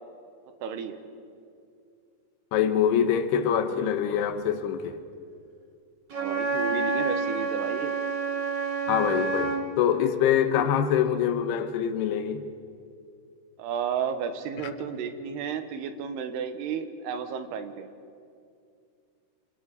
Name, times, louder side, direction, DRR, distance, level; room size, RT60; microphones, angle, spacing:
voice 1, 0.6-1.0 6.1-7.9 13.6-17.9, right 7 dB, 90° right, 3.2 m, -32 dB
voice 2, 2.5-5.0 8.9-12.5, left 9 dB, 90° left, 3.1 m, -25 dB
Wind instrument woodwind instrument, 6.1-9.7, right 4 dB, 45° right, 1.4 m, -28 dB
28.5 x 26.5 x 4.1 m
omnidirectional pair, 4.6 m